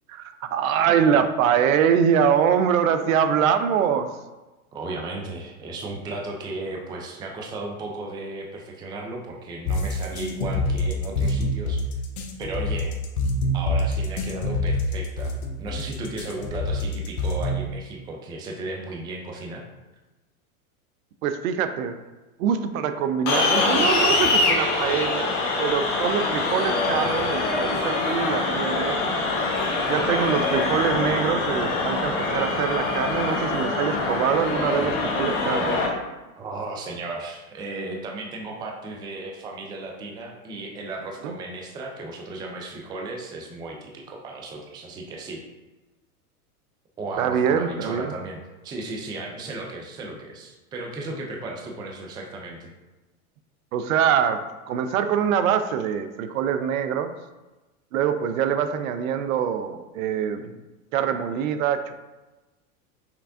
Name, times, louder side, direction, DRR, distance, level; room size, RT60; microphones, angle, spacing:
voice 1, 0.1-4.1 21.2-22.0 22.4-29.0 29.9-35.8 41.2-41.3 47.2-48.1 53.7-54.4 54.7-57.1 57.9-60.6 60.9-61.9, right 8 dB, 65° right, 9 dB, 0.6 m, -24 dB
voice 2, 4.7-11.9 12.4-13.0 13.5-15.3 15.6-19.6 36.4-45.4 47.0-52.7, right 2 dB, 10° right, 0 dB, 0.4 m, -35 dB
sound 1, 9.7-17.7, left 1 dB, 75° left, 0.9 m, -25 dB
sound 2, 23.3-35.9, left 3 dB, 45° left, 1.3 m, -24 dB
5.9 x 3.3 x 2.6 m, 1.1 s
hypercardioid pair, 110°, 44 cm